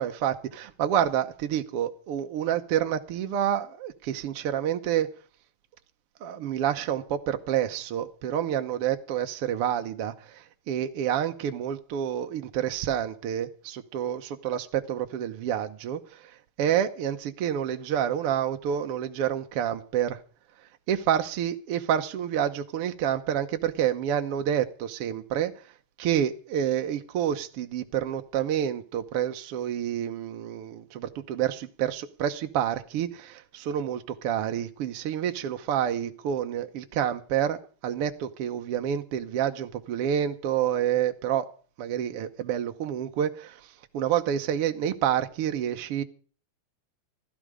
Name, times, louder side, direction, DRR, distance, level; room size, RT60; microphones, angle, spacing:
voice 1, 0.0-5.1 6.2-20.2 20.9-25.5 26.0-41.5 41.8-46.0, right 10 dB, 65° right, 1.6 m, -28 dB
16.0 x 13.5 x 5.0 m
omnidirectional pair, 3.4 m